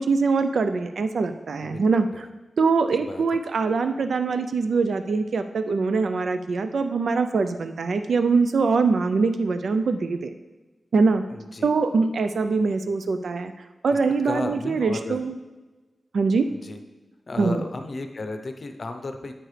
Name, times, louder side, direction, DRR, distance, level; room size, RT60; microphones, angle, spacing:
voice 1, 0.0-2.3 2.6-10.3 10.9-11.2 11.6-15.4 16.1-16.5 17.4-17.6, right 4 dB, 75° right, 9 dB, 0.4 m, -23 dB
voice 2, 11.3-11.7 13.9-14.0 14.2-15.2 16.5-16.8 17.3-19.3, left 2 dB, 45° left, 6 dB, 0.7 m, -34 dB
8.9 x 8.7 x 3.3 m, 1.2 s
wide cardioid pair, 140°, 0 cm